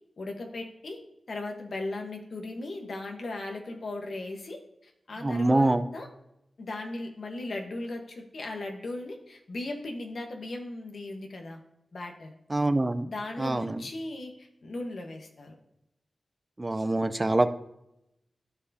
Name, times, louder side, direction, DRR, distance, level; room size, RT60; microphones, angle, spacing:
voice 1, 0.2-1.0 1.3-6.1 6.6-11.6 11.9-12.3 13.0-15.6, left 2 dB, 70° left, 3 dB, 1.2 m, -37 dB
voice 2, 5.2-5.8 12.5-13.1 13.4-13.8 16.6-17.5, right 2 dB, 30° right, 11 dB, 0.5 m, -25 dB
13.5 x 4.6 x 2.7 m, 0.85 s
cardioid pair, 60°, 0 cm